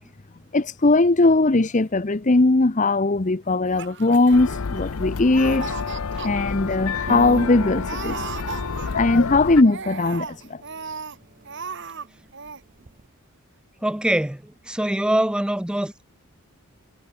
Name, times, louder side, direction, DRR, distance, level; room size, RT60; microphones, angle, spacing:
voice 1, 0.5-5.8 6.2-8.2 8.9-10.6, left 2 dB, 35° left, 0.8 m, -19 dB
Laughter, 3.6-5.0 5.3-6.3 6.7-6.8 7.0-7.4 7.8-9.2 9.6-11.2 11.4-12.1 12.3-12.6, right 5 dB, 55° right, 2.1 m, -36 dB
sound 1, 4.3-9.6, left 5 dB, 70° left, 0.6 m, -29 dB
sound 2, 7.1-10.9 11.4-12.0 12.3-13.1, right 3 dB, 35° right, 0.9 m, -38 dB
voice 2, 13.8-16.1, right 1 dB, 5° right, 0.4 m, -24 dB
head